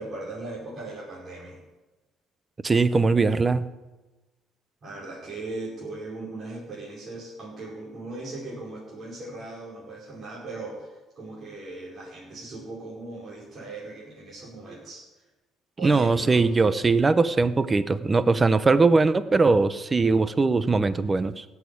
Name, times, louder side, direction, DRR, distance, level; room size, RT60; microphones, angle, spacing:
voice 1, 0.0-1.6 4.8-15.0 15.8-16.5, right 2 dB, 40° right, -6 dB, 5.1 m, -38 dB
voice 2, 2.6-3.7 15.8-21.4, right 3 dB, 20° right, 14 dB, 0.7 m, -21 dB
17.0 x 7.2 x 8.6 m, 1.1 s
cardioid pair, 115°, 0 cm